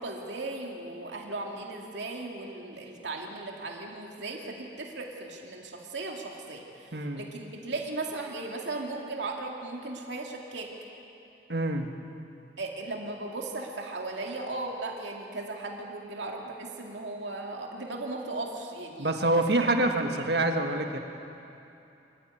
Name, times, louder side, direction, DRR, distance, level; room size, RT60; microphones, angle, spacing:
voice 1, 0.0-10.7 12.6-19.7 20.1-20.2, right 2 dB, 85° right, 0 dB, 2.4 m, -37 dB
voice 2, 6.9-7.2 11.5-11.9 19.0-21.0, right 2 dB, 65° right, 4 dB, 1.7 m, -26 dB
24.0 x 14.0 x 9.2 m, 2.8 s
head